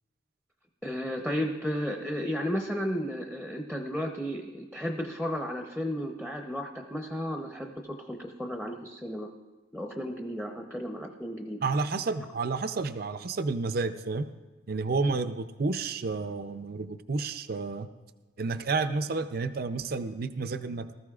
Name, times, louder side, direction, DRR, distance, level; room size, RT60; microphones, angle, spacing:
voice 1, 0.8-9.3 9.7-11.6, equal, 5° left, 2 dB, 0.7 m, -33 dB
voice 2, 11.6-14.3 14.7-17.9 18.4-20.9, right 3 dB, 50° right, 11 dB, 0.5 m, -30 dB
20.0 x 14.0 x 2.4 m, 1.2 s
head